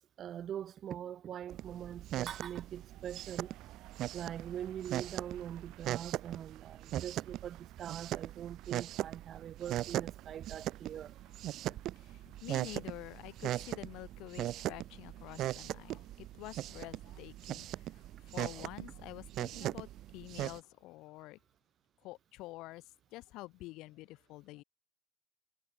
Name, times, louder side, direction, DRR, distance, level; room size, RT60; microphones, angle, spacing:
voice 1, 0.0-3.6 4.1-11.2, right 10 dB, 45° right, 0.6 m, -43 dB
sound 1, 1.5-20.6, right 14 dB, 65° right, 1.5 m, -40 dB
sound 2, 2.6-18.7 19.0-19.4, right 20 dB, 85° right, 5.9 m, -64 dB
voice 2, 12.0-21.4 22.0-22.8 23.1-24.6, left 19 dB, 80° left, 6.0 m, -48 dB
cardioid pair, 135°, 0 cm